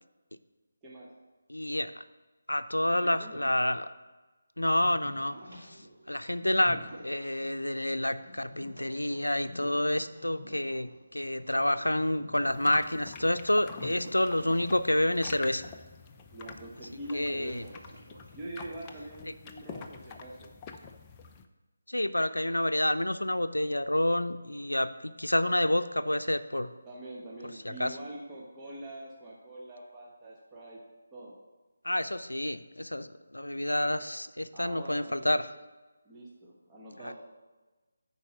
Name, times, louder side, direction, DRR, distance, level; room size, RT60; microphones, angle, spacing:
voice 1, 1.5-2.0 2.5-3.9 4.6-5.8 6.1-6.8 7.0-15.6 17.1-17.7 21.9-26.7 27.6-28.0 31.8-35.5 37.0-37.1, left 1 dB, 90° left, 12 dB, 0.5 m, -29 dB
voice 2, 2.8-3.5 16.3-17.8 18.3-20.5 26.8-30.8 31.1-31.3 34.5-35.5 36.0-37.1, right 1 dB, 15° right, -6 dB, 1.3 m, -44 dB
sound 1, 4.7-15.1 15.4-15.5 16.1-16.5 17.0-18.8, left 1 dB, 55° right, 3.2 m, -49 dB
sound 2, 12.4-21.4, left 5 dB, 20° left, 0.5 m, -47 dB
9.6 x 4.7 x 5.8 m, 1.2 s
figure-of-eight pair, 155°, 0 cm